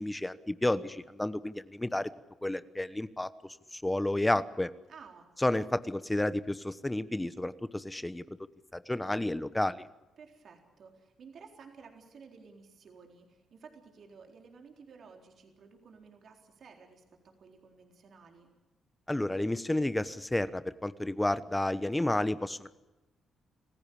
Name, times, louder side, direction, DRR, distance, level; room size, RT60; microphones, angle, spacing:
voice 1, 0.0-2.1 2.4-4.7 5.4-8.2 8.7-9.8 19.1-22.7, left 1 dB, 15° left, 15 dB, 1.0 m, -31 dB
voice 2, 4.9-5.7 10.2-18.5, right 5 dB, 60° right, 3 dB, 3.9 m, -54 dB
27.0 x 15.5 x 8.7 m, 1.0 s
supercardioid pair, 55°, 0 cm